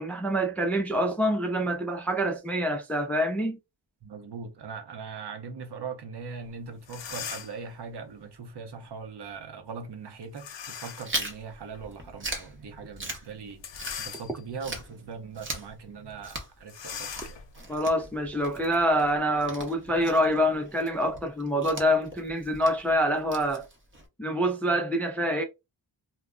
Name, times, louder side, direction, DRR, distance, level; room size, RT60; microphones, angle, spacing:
voice 1, 0.0-3.6 17.7-23.6 24.2-25.4, equal, 5° left, 0.4 m, -26 dB
voice 2, 4.0-13.6 14.0-17.4, right 5 dB, 65° right, 0.7 m, -40 dB
sound 1, 6.5-6.6 6.8-7.7 10.4-11.2 11.7-11.8 13.5-14.6 15.2-15.4 15.7-15.8 16.7-19.1, left 7 dB, 75° left, 0.7 m, -40 dB
Chewing mastication, 11.0-14.3 14.6-24.1, right 2 dB, 25° right, 0.7 m, -40 dB
2.2 x 2.0 x 3.6 m
wide cardioid pair, 110°, 45 cm